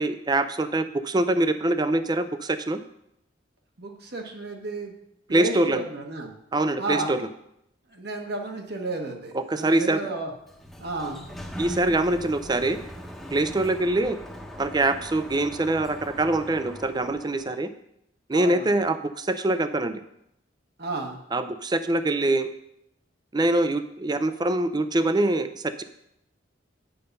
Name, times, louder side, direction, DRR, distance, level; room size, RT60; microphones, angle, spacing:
voice 1, 0.0-2.8 5.3-5.8 6.5-7.2 9.3-10.0 11.6-12.8 13.3-14.2 14.6-17.7 18.3-20.0 21.3-22.5 23.3-25.8, right 2 dB, 25° right, 10 dB, 0.5 m, -24 dB
voice 2, 3.8-4.9 5.3-6.3 6.8-7.2 7.9-10.3 10.8-11.2 18.3-18.7 20.8-21.2, right 2 dB, 60° right, 3 dB, 1.3 m, -32 dB
Sliding door, 10.3-17.7, equal, ahead, 0.9 m, -41 dB
8.7 x 5.6 x 5.3 m, 0.78 s
head